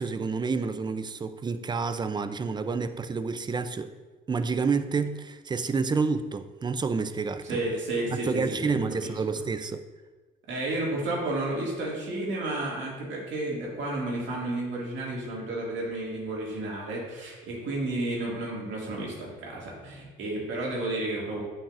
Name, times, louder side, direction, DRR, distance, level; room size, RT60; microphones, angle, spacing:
voice 1, 0.0-3.9 4.3-7.6 8.1-9.8, right 4 dB, 20° right, 10 dB, 0.4 m, -29 dB
voice 2, 7.4-9.1 10.5-21.4, right 2 dB, 75° right, -4 dB, 2.1 m, -32 dB
8.5 x 5.4 x 2.5 m, 1.3 s
cardioid pair, 90°, 20 cm